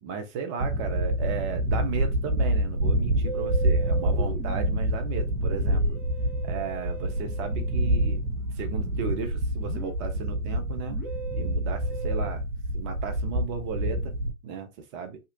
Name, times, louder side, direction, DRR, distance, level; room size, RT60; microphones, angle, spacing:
voice 1, 0.0-6.0 6.4-8.3 8.6-11.0 11.3-12.4 12.7-14.1 14.4-15.2, right 6 dB, 25° right, 0.4 m, -35 dB
sound 1, 0.6-14.3, right 1 dB, 70° right, 0.7 m, -27 dB
Musical instrument, 3.2-12.3, right 4 dB, 5° right, 0.9 m, -41 dB
2.9 x 2.4 x 2.7 m
figure-of-eight pair, 110°, 42 cm